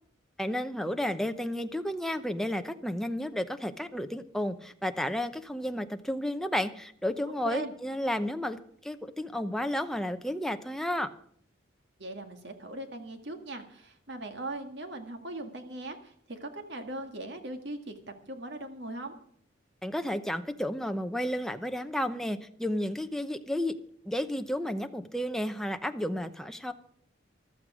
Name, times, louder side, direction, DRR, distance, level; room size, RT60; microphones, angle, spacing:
voice 1, 0.4-11.1 19.8-23.7 24.1-26.7, left 1 dB, ahead, 7 dB, 0.7 m, -32 dB
voice 2, 12.0-19.2, right 2 dB, 60° right, 6 dB, 1.9 m, -39 dB
14.5 x 12.5 x 5.0 m, 0.62 s
head